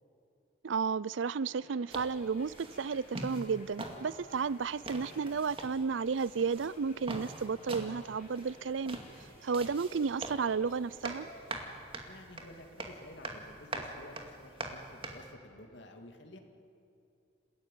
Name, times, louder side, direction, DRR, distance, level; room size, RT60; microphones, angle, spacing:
voice 1, 0.6-9.0 9.4-11.3, right 5 dB, 85° right, 0.5 m, -33 dB
sound 1, 1.4-11.8, left 2 dB, 40° left, 4.5 m, -57 dB
sound 2, 1.9-15.3, right 2 dB, 30° right, 2.2 m, -44 dB
voice 2, 12.1-16.4, left 1 dB, 70° left, 2.5 m, -52 dB
28.5 x 16.0 x 9.2 m
head